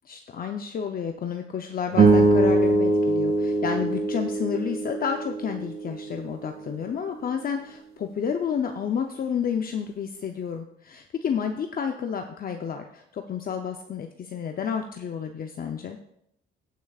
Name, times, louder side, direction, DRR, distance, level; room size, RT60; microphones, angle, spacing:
voice 1, 0.1-16.0, left 7 dB, 50° left, 5 dB, 0.7 m, -30 dB
sound 1, 1.9-6.4, right 2 dB, 50° right, 1.7 m, -22 dB
18.5 x 6.2 x 2.4 m, 0.75 s
cardioid pair, 90°, 20 cm